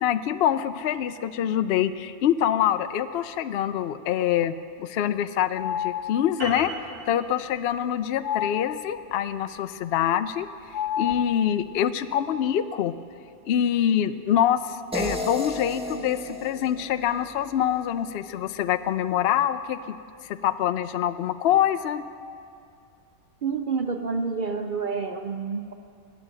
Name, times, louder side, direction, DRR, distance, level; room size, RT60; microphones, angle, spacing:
voice 1, 0.0-6.7 7.1-10.5 11.0-12.9 13.5-20.0 20.2-22.0, left 10 dB, 70° left, 11 dB, 0.6 m, -25 dB
sound 1, 5.6-6.5 8.2-9.2 10.7-11.8, left 10 dB, 90° left, 1.2 m, -31 dB
sound 2, 6.4-11.1, right 1 dB, 85° right, 4.3 m, -39 dB
sound 3, 14.9-18.0, equal, 5° right, 1.4 m, -34 dB
voice 2, 23.4-25.7, right 5 dB, 60° right, 6 dB, 0.5 m, -28 dB
21.0 x 7.4 x 8.9 m, 2.5 s
omnidirectional pair, 1.6 m